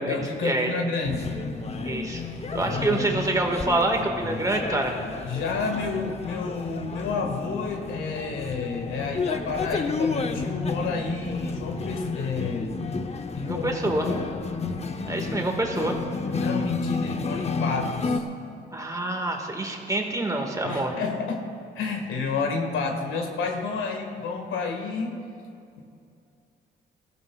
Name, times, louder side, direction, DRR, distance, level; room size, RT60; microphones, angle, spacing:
voice 1, 0.1-1.3 1.9-2.0 2.6-3.1 5.2-12.7 13.3-14.3 16.3-18.2 18.5-18.7 20.6-21.4 21.7-25.2 25.7-25.8, left 4 dB, 80° left, 3 dB, 1.8 m, -30 dB
sound 1, 1.0-18.2, left 4 dB, 35° left, 0.8 m, -31 dB
voice 2, 1.8-2.2 2.5-5.0 13.4-14.1 15.0-16.0 18.7-20.9, right 2 dB, 15° right, 2 dB, 1.7 m, -26 dB
20.0 x 14.0 x 2.4 m, 2.5 s
cardioid pair, 90°, 20 cm